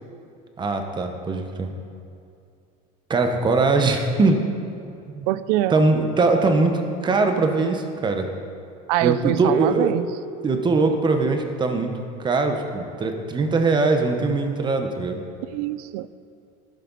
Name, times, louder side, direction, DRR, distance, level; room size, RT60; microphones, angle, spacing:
voice 1, 0.6-1.7 3.1-4.4 5.1-5.3 5.7-8.3 9.0-9.9 10.4-11.9 12.2-15.2, right 3 dB, 25° right, 5 dB, 1.1 m, -21 dB
voice 2, 5.3-5.8 8.9-10.1 15.5-16.1, right 15 dB, 80° right, 16 dB, 0.5 m, -23 dB
12.0 x 11.5 x 4.1 m, 2.5 s
supercardioid pair, 130°, 20 cm